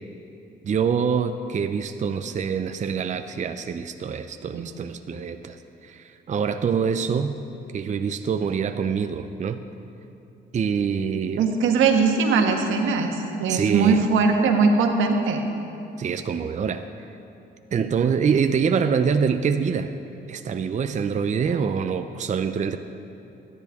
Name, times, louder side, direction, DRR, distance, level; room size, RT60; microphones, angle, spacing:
voice 1, 0.6-5.6 5.8-7.3 7.7-9.6 10.5-11.4 13.5-14.0 16.0-16.9 17.7-19.9 20.3-22.8, right 6 dB, 35° right, 8 dB, 0.6 m, -25 dB
voice 2, 11.4-15.4, right 4 dB, 85° right, 3 dB, 1.4 m, -20 dB
23.0 x 10.5 x 3.6 m, 2.9 s
cardioid pair, 90°, 20 cm